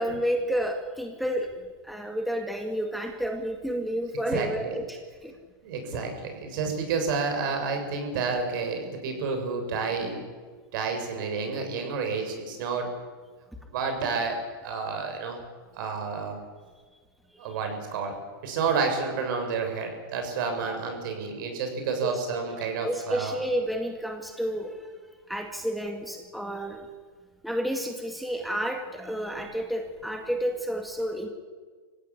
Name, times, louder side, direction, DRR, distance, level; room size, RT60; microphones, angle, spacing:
voice 1, 0.0-1.6 1.8-5.3 5.9-6.0 22.0-22.1 22.8-24.9 25.3-26.9 27.4-31.3, equal, ahead, 3 dB, 2.0 m, -30 dB
voice 2, 4.3-4.8 5.6-10.2 10.7-12.9 13.7-15.4 15.7-16.4 17.4-18.2 18.4-23.4, right 5 dB, 60° right, 4 dB, 7.1 m, -30 dB
25.0 x 16.5 x 9.9 m, 1.5 s
hypercardioid pair, 140°, 13 cm